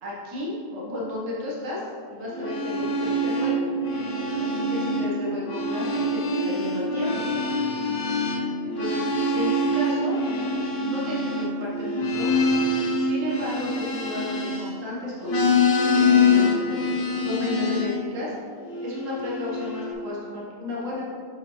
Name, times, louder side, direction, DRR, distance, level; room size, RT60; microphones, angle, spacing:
voice 1, 0.0-3.7 4.4-7.2 8.6-9.1 9.3-10.2 10.8-12.3 13.0-15.9 16.3-16.9 17.2-18.3 18.8-21.0, left 1 dB, 55° right, -5 dB, 1.5 m, -33 dB
sound 1, 2.3-5.1 5.4-14.9 15.2-18.0 18.7-19.9, left 2 dB, 50° left, 0.7 m, -25 dB
6.5 x 5.7 x 3.1 m, 2.3 s
omnidirectional pair, 1.7 m